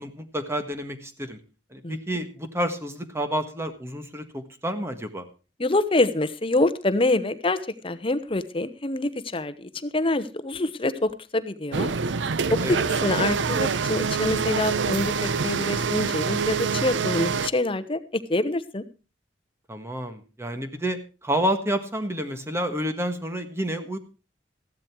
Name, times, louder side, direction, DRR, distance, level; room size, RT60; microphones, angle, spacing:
voice 1, 0.0-1.4 1.7-5.3 12.6-12.8 19.7-24.0, equal, 15° right, 8 dB, 1.6 m, -29 dB
voice 2, 5.6-11.9 12.7-18.0 18.3-18.8, left 2 dB, 30° left, 11 dB, 0.9 m, -26 dB
sound 1, 11.7-17.5, right 5 dB, 90° right, 0.6 m, -26 dB
15.0 x 12.0 x 4.6 m, 0.33 s
head